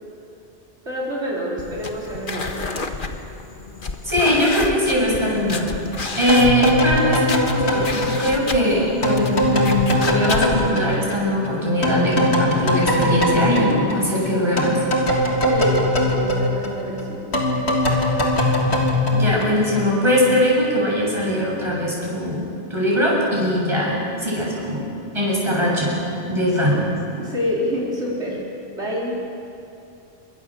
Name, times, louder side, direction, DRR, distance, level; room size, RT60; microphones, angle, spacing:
voice 1, 0.9-2.9 15.5-17.4 26.5-26.6 27.2-28.4 28.8-29.2, equal, 80° right, -4 dB, 4.5 m, -27 dB
sound 1, 1.6-10.7, left 3 dB, 50° left, 1.7 m, -31 dB
voice 2, 4.0-5.7 6.2-7.2 7.5-14.8 19.1-22.4 22.7-24.8 25.1-25.9 26.3-26.8, equal, 25° right, -4 dB, 8.1 m, -21 dB
sound 2, 6.3-11.5 11.8-20.0, left 1 dB, 65° left, 3.5 m, -21 dB
28.0 x 24.0 x 7.7 m, 2.7 s
omnidirectional pair, 1.2 m